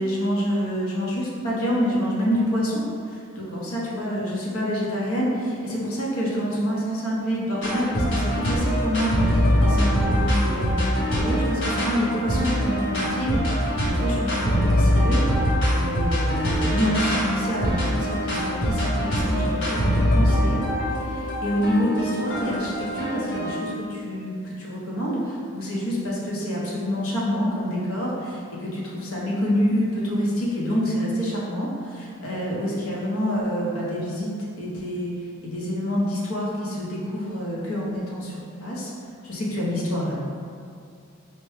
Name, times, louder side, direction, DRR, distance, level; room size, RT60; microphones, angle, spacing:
voice 1, 0.0-20.6 21.0-38.3 38.6-38.9 39.2-40.2, equal, 85° left, -5 dB, 0.9 m, -27 dB
sound 1, 7.6-23.6, equal, 55° left, 0.7 m, -23 dB
4.4 x 2.1 x 3.2 m, 2.4 s
head